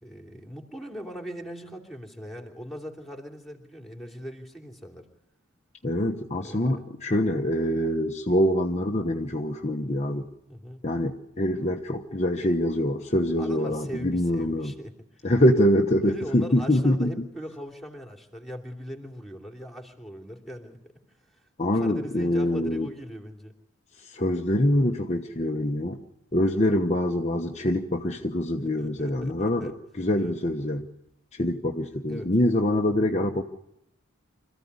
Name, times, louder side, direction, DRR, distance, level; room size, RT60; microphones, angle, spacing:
voice 1, 0.0-5.1 6.3-6.8 10.5-10.8 13.4-15.3 16.0-20.8 21.2-23.5 28.6-29.7 30.1-30.3 32.1-32.3, equal, ahead, 3 dB, 3.0 m, -40 dB
voice 2, 5.8-10.3 10.8-14.8 15.2-17.1 21.6-22.9 24.0-26.0 26.3-30.9 31.3-33.4, left 1 dB, 30° left, 2 dB, 1.1 m, -25 dB
26.0 x 15.5 x 9.6 m, 0.83 s
head